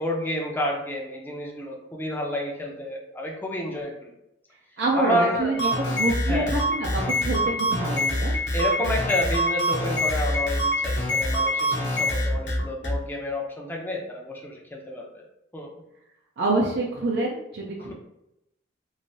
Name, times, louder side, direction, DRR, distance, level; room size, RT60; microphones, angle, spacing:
voice 1, 0.0-4.1 4.9-5.6 6.3-6.5 8.5-15.2 15.5-15.7, left 1 dB, 10° left, -1 dB, 0.5 m, -30 dB
voice 2, 4.8-8.3 16.4-17.9, right 2 dB, 65° right, -2 dB, 0.4 m, -26 dB
sound 1, 5.5-13.0, equal, 75° left, 0.8 m, -25 dB
3.1 x 2.5 x 2.7 m, 0.84 s
head